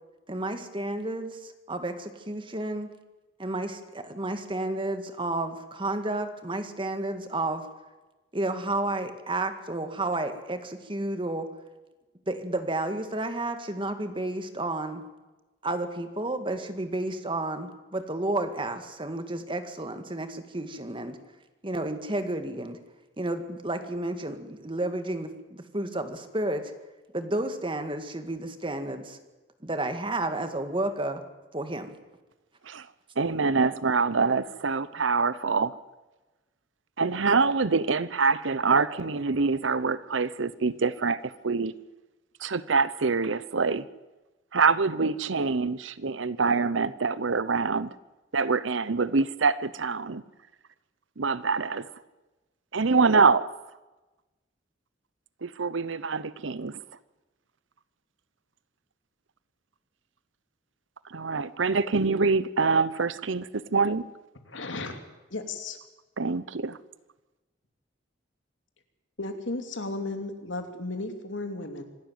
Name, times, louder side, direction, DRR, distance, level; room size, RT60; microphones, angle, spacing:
voice 1, 0.3-2.9 3.4-7.7 8.3-11.5 12.3-15.0 15.6-21.2 21.6-22.8 23.2-26.7 27.1-29.2 29.6-31.2 31.5-32.0, right 2 dB, 25° right, 8 dB, 1.9 m, -31 dB
voice 2, 33.2-35.8 37.0-41.7 42.4-43.9 44.5-47.9 48.3-50.2 51.2-51.9 52.7-53.5 55.4-56.8 61.1-64.0 66.2-66.8, right 4 dB, 80° right, 17 dB, 0.9 m, -25 dB
voice 3, 64.5-65.0 65.3-65.8 69.2-71.8, left 2 dB, 80° left, 6 dB, 2.8 m, -34 dB
26.0 x 12.5 x 9.4 m, 1.1 s
head